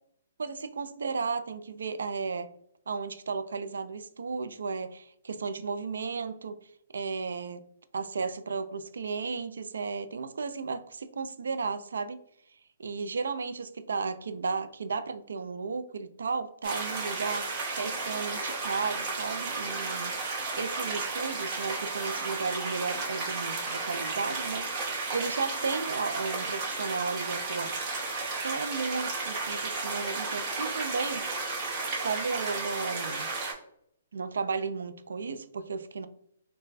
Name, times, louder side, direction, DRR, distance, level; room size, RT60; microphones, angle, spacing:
voice 1, 0.4-2.5 2.9-6.6 6.9-7.6 7.9-12.2 12.8-20.1 20.6-24.7 25.1-27.8 28.4-31.3 32.0-33.3 34.1-36.1, right 4 dB, 85° right, 10 dB, 0.4 m, -34 dB
sound 1, 16.6-33.5, right 3 dB, 25° right, 0.9 m, -33 dB
3.2 x 2.2 x 4.0 m, 0.71 s
hypercardioid pair, 165°, 0 cm